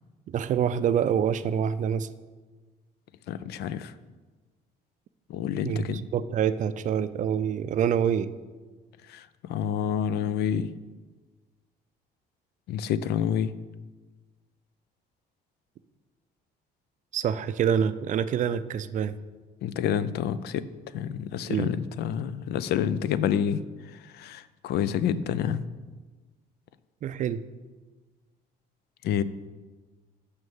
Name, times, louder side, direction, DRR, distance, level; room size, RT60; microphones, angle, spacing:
voice 1, 0.3-2.1 5.6-8.3 17.1-19.1 21.5-21.7 27.0-27.4, right 8 dB, 50° right, 14 dB, 0.4 m, -26 dB
voice 2, 3.3-3.9 5.3-6.0 9.1-10.7 12.7-13.5 19.6-20.7 20.9-23.6 23.9-25.7 29.0-29.2, left 9 dB, 70° left, 15 dB, 0.5 m, -28 dB
6.3 x 5.7 x 7.2 m, 1.3 s
cardioid pair, 110°, 17 cm